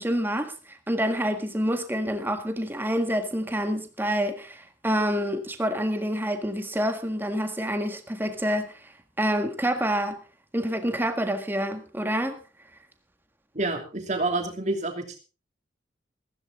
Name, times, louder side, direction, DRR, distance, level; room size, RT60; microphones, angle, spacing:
voice 1, 0.0-8.7 9.2-10.2 10.5-12.4, equal, 10° right, 1.7 m, -27 dB
voice 2, 13.5-15.2, right 2 dB, 40° right, 2.9 m, -28 dB
15.0 x 15.0 x 3.8 m
head